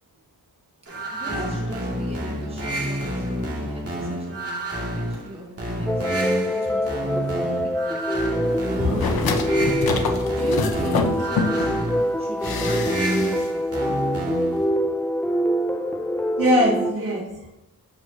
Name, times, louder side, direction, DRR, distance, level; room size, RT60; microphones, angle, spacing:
sound 1, 0.9-14.7, right 1 dB, 40° right, 2.2 m, -29 dB
voice 1, 1.1-8.0 8.7-9.3 10.0-11.7 12.2-13.6, right 2 dB, 15° right, -1 dB, 1.2 m, -37 dB
sound 2, 5.9-16.9, equal, 5° left, 0.4 m, -25 dB
sound 3, 8.8-11.8 12.4-13.5 13.7-13.8, left 4 dB, 85° left, 0.9 m, -27 dB
voice 2, 8.8-9.2 16.4-17.5, equal, 60° right, -5 dB, 2.8 m, -22 dB
14.0 x 4.7 x 2.7 m, 0.94 s
wide cardioid pair, 105°, 35 cm